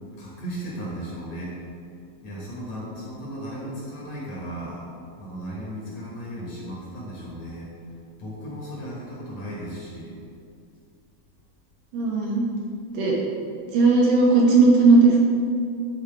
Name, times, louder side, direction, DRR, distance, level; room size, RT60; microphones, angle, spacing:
voice 1, 0.2-1.5 2.2-4.9 5.2-7.7 8.2-10.1, equal, 55° left, -6 dB, 2.3 m, -35 dB
voice 2, 11.9-12.5 12.9-13.2 13.7-15.3, right 3 dB, 70° right, -3 dB, 2.3 m, -17 dB
10.5 x 4.6 x 3.3 m, 2.5 s
omnidirectional pair, 4.1 m